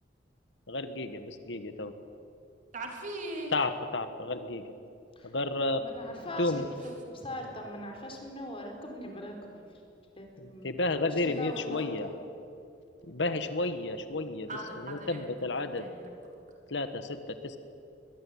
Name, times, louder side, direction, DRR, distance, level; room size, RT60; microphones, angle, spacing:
voice 1, 0.7-1.9 3.5-4.6 5.2-5.8 6.4-6.7 10.4-12.1 13.1-14.5 14.8-15.9 16.7-17.6, left 2 dB, 80° left, 9 dB, 1.4 m, -32 dB
voice 2, 2.7-3.5 6.1-6.2 14.5-16.1, right 1 dB, 45° right, 2 dB, 3.5 m, -40 dB
voice 3, 5.8-9.6 10.2-10.7 11.1-12.1, left 1 dB, 30° left, 2 dB, 4.4 m, -41 dB
22.0 x 20.5 x 8.7 m, 2.7 s
head